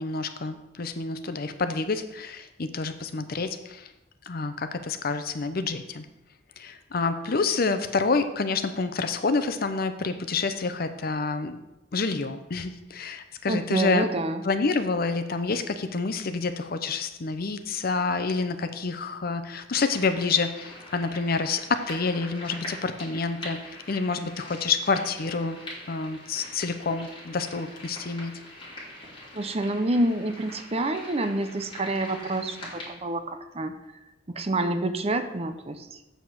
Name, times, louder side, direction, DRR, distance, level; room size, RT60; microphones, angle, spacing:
voice 1, 0.0-3.9 4.3-6.1 6.6-11.6 11.9-14.0 14.4-23.6 23.9-25.6 25.9-28.3, left 4 dB, 55° left, 10 dB, 0.7 m, -28 dB
voice 2, 13.5-14.4 29.3-33.7 34.3-36.0, right 2 dB, 35° right, 8 dB, 0.7 m, -28 dB
sound 1, 19.7-32.9, left 1 dB, 30° left, 3.1 m, -43 dB
7.9 x 5.3 x 6.2 m, 0.95 s
head